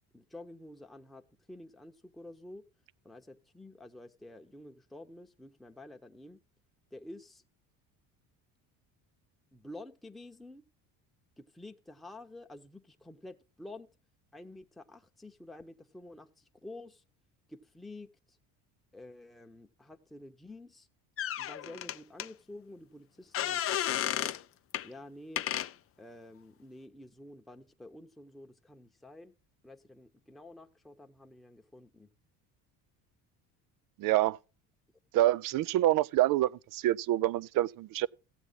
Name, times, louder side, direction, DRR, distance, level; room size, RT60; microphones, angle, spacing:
voice 1, 0.1-2.6 3.0-6.4 6.9-7.4 9.5-10.6 11.4-13.9 14.3-17.0 17.5-18.4 18.9-20.9 21.4-24.4 24.8-25.4 26.0-29.3 29.6-32.1, left 1 dB, ahead, 0.9 m, -50 dB
sound 1, 21.2-22.3 23.3-24.4 24.7-24.9 25.4-25.7, left 11 dB, 35° left, 0.4 m, -32 dB
voice 2, 34.0-34.4 35.1-38.1, right 15 dB, 55° right, 0.4 m, -27 dB
15.5 x 8.0 x 4.0 m
supercardioid pair, 80°, 42 cm